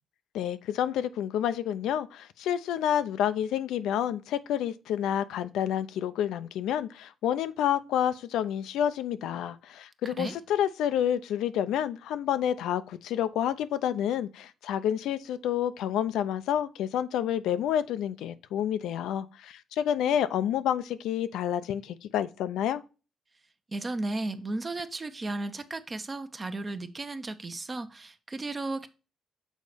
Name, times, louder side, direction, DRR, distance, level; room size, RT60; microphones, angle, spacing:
voice 1, 0.3-22.8, left 10 dB, 85° left, 0.5 m, -29 dB
voice 2, 10.0-10.3 23.7-28.9, right 2 dB, 30° right, 0.8 m, -34 dB
6.4 x 4.1 x 4.9 m
cardioid pair, 90°, 0 cm